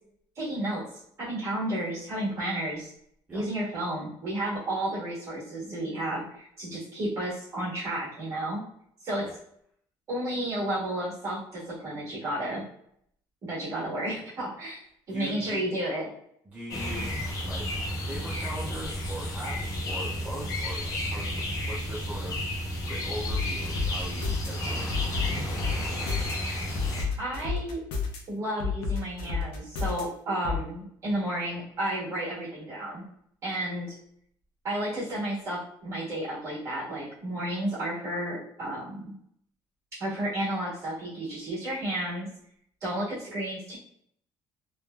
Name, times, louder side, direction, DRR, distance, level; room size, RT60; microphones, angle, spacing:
voice 1, 0.3-0.9 1.2-2.9 3.3-8.6 9.0-9.3 10.1-12.6 13.4-16.1 27.2-27.8 28.3-33.0 33.4-34.0 34.6-39.1 40.0-42.3 42.8-43.8, right 1 dB, 35° right, -6 dB, 1.3 m, -32 dB
voice 2, 15.1-15.7 16.4-17.2 17.4-17.7 18.0-25.8, right 1 dB, 15° right, -5 dB, 0.4 m, -41 dB
sound 1, 16.7-27.0, left 1 dB, 40° left, 0.6 m, -32 dB
sound 2, 23.3-24.5 24.9-26.3 26.8-28.2 28.6-30.0 30.4-30.6, left 5 dB, 85° left, 0.6 m, -30 dB
3.1 x 2.2 x 2.2 m, 0.69 s
cardioid pair, 170°, 9 cm